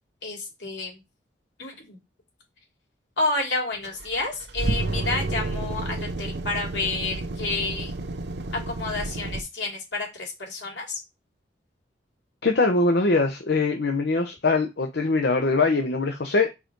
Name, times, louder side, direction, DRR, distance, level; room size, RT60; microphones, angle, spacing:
voice 1, 0.2-1.0 1.6-2.0 3.2-7.9 8.7-11.0, left 3 dB, 80° left, 0 dB, 2.7 m, -30 dB
sound 1, 3.8-9.4, right 2 dB, 70° right, 0.8 m, -30 dB
voice 2, 12.4-16.5, left 3 dB, 65° left, 4 dB, 0.8 m, -22 dB
5.1 x 4.8 x 4.6 m, 0.24 s
head